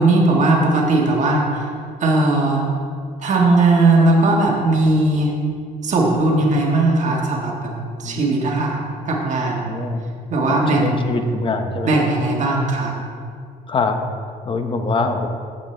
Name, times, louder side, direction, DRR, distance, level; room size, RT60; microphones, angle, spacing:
voice 1, 0.0-1.7 2.0-2.7 3.2-5.3 5.8-7.7 8.0-8.8 9.1-9.7 10.3-11.1 11.8-12.9, right 2 dB, 45° right, -2 dB, 1.8 m, -18 dB
voice 2, 8.0-8.4 9.7-10.0 10.5-12.1 13.7-14.0 14.4-15.3, left 3 dB, 30° left, 6 dB, 0.8 m, -23 dB
15.0 x 5.1 x 3.4 m, 2.1 s
cardioid pair, 110°, 17 cm